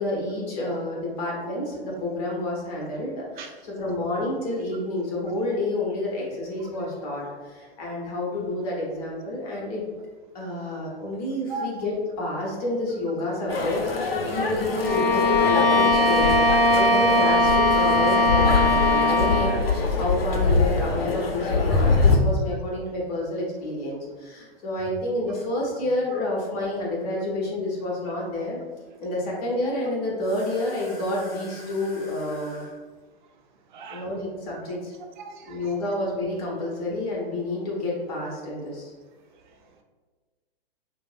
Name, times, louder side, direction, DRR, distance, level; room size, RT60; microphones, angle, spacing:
voice 1, 0.0-9.8 10.3-16.4 16.7-28.6 29.0-32.8 33.9-34.9 35.5-38.9, left 2 dB, 40° left, -3 dB, 0.9 m, -29 dB
sound 1, 13.5-22.2, left 4 dB, 75° left, 0.6 m, -24 dB
Bowed string instrument, 14.8-19.6, left 1 dB, 10° left, 0.8 m, -20 dB
voice 2, 33.7-34.0 35.2-35.6, right 4 dB, 50° right, 4 dB, 0.5 m, -36 dB
4.4 x 2.0 x 2.5 m, 1.4 s
figure-of-eight pair, 110°, 30 cm